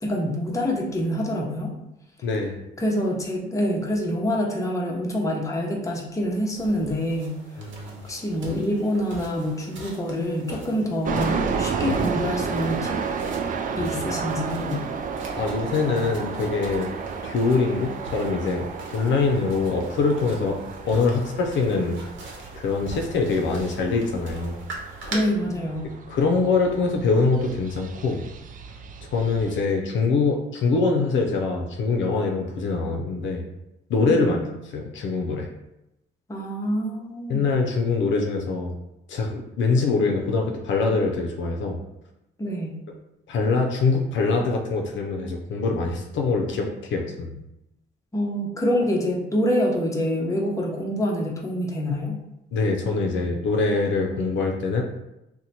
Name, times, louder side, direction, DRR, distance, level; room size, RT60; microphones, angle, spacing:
voice 1, 0.0-1.7 2.8-7.4 8.0-13.0 13.7-14.8 25.1-25.9 34.1-34.5 36.3-37.4 42.4-42.8 48.1-52.2, equal, 15° left, -2 dB, 0.7 m, -26 dB
voice 2, 2.2-2.6 7.6-8.0 15.4-16.9 17.2-18.7 18.9-20.6 20.8-22.0 22.5-24.6 25.8-28.3 29.1-33.4 33.9-34.4 34.7-35.5 37.3-38.7 39.1-41.8 43.3-47.4 52.5-54.8, left 4 dB, 70° left, 1 dB, 0.5 m, -24 dB
sound 1, 6.5-25.2, right 2 dB, 70° right, 0.9 m, -42 dB
sound 2, 11.0-29.6, right 5 dB, 40° right, 0.4 m, -32 dB
2.9 x 2.2 x 4.0 m, 0.89 s
cardioid pair, 90°, 20 cm